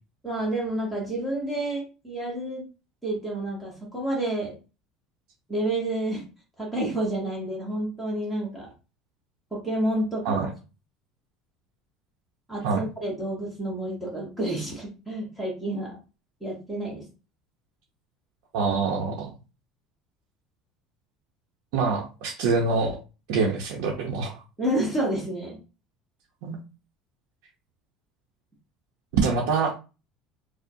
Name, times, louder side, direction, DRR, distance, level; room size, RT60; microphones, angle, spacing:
voice 1, 0.2-2.6 3.0-4.5 5.5-6.2 6.6-8.7 9.5-10.5 12.5-16.0 16.4-17.1 24.6-25.6, right 1 dB, 5° right, -5 dB, 1.0 m, -29 dB
voice 2, 18.5-19.3 21.7-23.0 23.3-24.3 26.4-26.6 29.2-29.8, right 4 dB, 70° right, -3 dB, 0.8 m, -25 dB
4.7 x 2.1 x 2.7 m, 0.32 s
cardioid pair, 180°, 0 cm